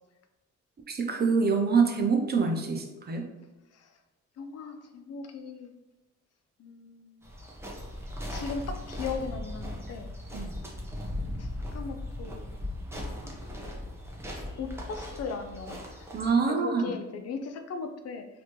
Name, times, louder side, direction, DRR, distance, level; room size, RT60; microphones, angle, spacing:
voice 1, 0.9-3.2 10.3-10.5 16.1-17.0, right 5 dB, 35° right, 3 dB, 0.7 m, -25 dB
voice 2, 4.4-5.7 6.6-7.2 8.3-10.1 11.2-12.5 12.9-13.4 14.6-15.8 16.4-18.3, left 5 dB, 55° left, 7 dB, 0.5 m, -38 dB
sound 1, 7.2-16.3, left 1 dB, 10° right, 0.9 m, -38 dB
4.1 x 2.9 x 3.1 m, 1.0 s
cardioid pair, 90°, 30 cm